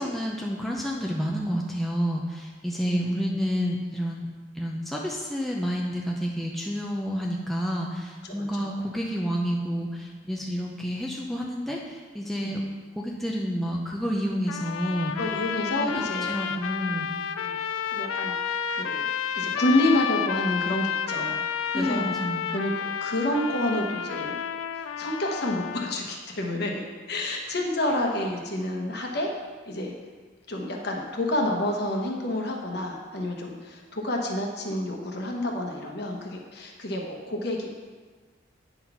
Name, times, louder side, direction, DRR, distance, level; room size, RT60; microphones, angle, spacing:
voice 1, 0.0-4.3 4.6-12.6 13.0-15.1 15.8-17.1 21.7-22.5, equal, ahead, -2 dB, 0.6 m, -29 dB
voice 2, 2.8-3.3 8.2-8.8 12.4-12.6 15.1-16.3 17.4-17.6 17.9-22.1 22.5-22.7 23.0-24.4 24.7-29.3 29.7-29.9 30.5-37.7, left 1 dB, 50° left, 0 dB, 1.1 m, -29 dB
sound 1, 14.5-26.0, left 8 dB, 85° left, 0.4 m, -31 dB
9.2 x 4.1 x 5.8 m, 1.4 s
head